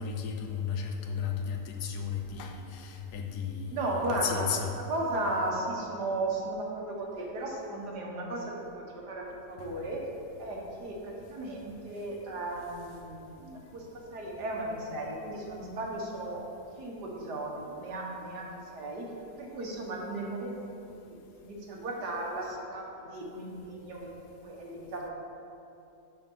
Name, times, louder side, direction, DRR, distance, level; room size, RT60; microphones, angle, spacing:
voice 1, 0.0-4.7 9.6-9.7, left 6 dB, 75° left, 3 dB, 1.3 m, -34 dB
voice 2, 3.7-4.5 4.9-10.0 10.4-16.4 16.8-19.1 19.4-25.1, right 2 dB, 80° right, -1 dB, 1.8 m, -36 dB
6.3 x 6.0 x 5.4 m, 2.7 s
omnidirectional pair, 1.7 m